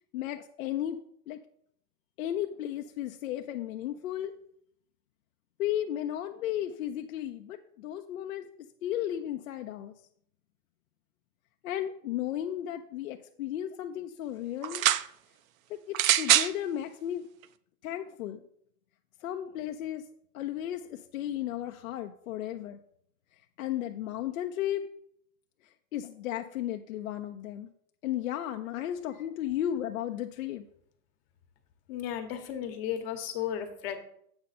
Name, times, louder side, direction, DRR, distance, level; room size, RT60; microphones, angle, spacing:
voice 1, 0.1-1.0 1.3-1.4 2.2-4.3 5.6-8.5 8.8-9.9 11.6-14.8 15.7-17.3 17.8-18.4 19.2-20.0 20.3-22.8 23.6-24.9 25.9-27.7 28.0-30.6, left 11 dB, 55° left, 5 dB, 0.6 m, -34 dB
sound 1, 14.6-15.1 15.9-16.5 17.4-17.5, right 12 dB, 55° right, 0.5 m, -23 dB
voice 2, 31.9-34.0, left 10 dB, 35° left, 7 dB, 1.1 m, -34 dB
7.8 x 5.5 x 4.1 m, 0.67 s
hypercardioid pair, 140°, 50 cm